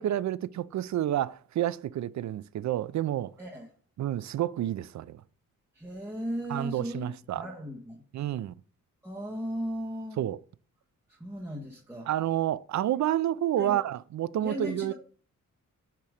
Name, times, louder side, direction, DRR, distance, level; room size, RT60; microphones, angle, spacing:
voice 1, 0.0-3.3 4.0-5.2 6.5-7.4 8.1-8.5 10.2-10.4 12.1-14.9, right 12 dB, 60° right, 0.4 m, -29 dB
voice 2, 5.7-8.0 9.0-10.2 11.2-12.1 13.6-13.8 14.4-14.9, equal, 10° right, 1.4 m, -36 dB
8.4 x 3.0 x 5.0 m
cardioid pair, 85°, 33 cm